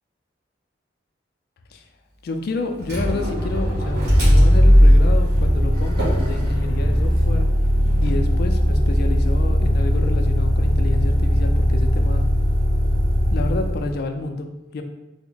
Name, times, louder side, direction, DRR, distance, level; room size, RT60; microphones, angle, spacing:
voice 1, 2.2-7.5 8.0-12.2 13.3-14.8, left 3 dB, 60° left, 6 dB, 0.3 m, -29 dB
Motor vehicle (road), 2.8-14.0, equal, 65° right, 1.4 m, -18 dB
3.4 x 2.0 x 3.8 m, 0.99 s
head